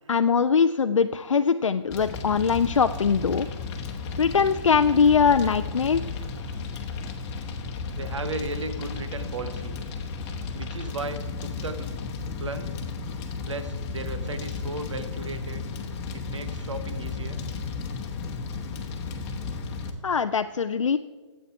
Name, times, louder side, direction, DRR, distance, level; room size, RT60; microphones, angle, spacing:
voice 1, 0.1-3.5 4.2-6.0 20.0-21.0, left 6 dB, 90° left, 9 dB, 0.4 m, -22 dB
Fire, 1.9-19.9, left 4 dB, 25° left, 1.1 m, -34 dB
voice 2, 7.9-9.8 10.5-11.9 12.4-12.8 13.4-15.7 16.1-17.4, right 3 dB, 70° right, 10 dB, 1.1 m, -35 dB
11.0 x 8.2 x 4.7 m, 1.4 s
figure-of-eight pair, 140°, 16 cm